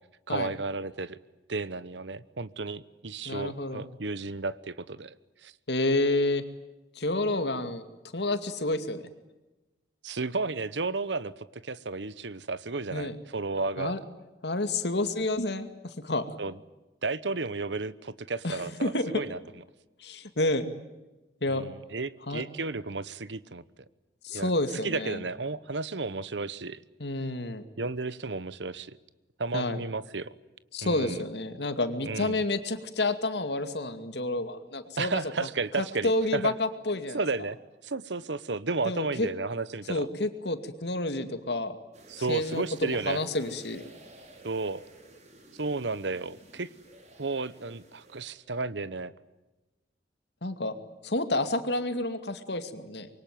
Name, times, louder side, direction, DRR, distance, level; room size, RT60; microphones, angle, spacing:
voice 1, 0.3-1.2 1.5-5.1 5.4-5.5 10.0-14.0 16.4-16.5 17.0-19.4 21.5-23.6 24.3-24.5 24.8-26.8 27.8-29.0 29.4-30.3 30.8-31.2 32.0-32.4 35.0-36.5 37.1-37.6 37.8-40.1 42.1-43.2 44.4-44.8 45.5-46.7 47.2-49.1, right 3 dB, 85° right, 17 dB, 1.1 m, -33 dB
voice 2, 3.3-3.8 5.7-6.4 6.9-7.8 8.1-9.0 12.9-13.1 13.8-14.0 14.4-16.3 18.4-19.1 20.0-20.7 21.4-21.7 22.3-22.4 24.2-25.2 27.0-27.6 29.5-29.8 30.7-35.2 35.8-37.2 38.8-39.3 39.9-41.8 42.3-43.8 50.4-50.7 51.0-53.1, left 2 dB, 70° left, 9 dB, 2.4 m, -29 dB
sound 1, 41.9-48.3, right 1 dB, 40° right, 5.3 m, -53 dB
26.0 x 23.5 x 9.3 m, 1.1 s
head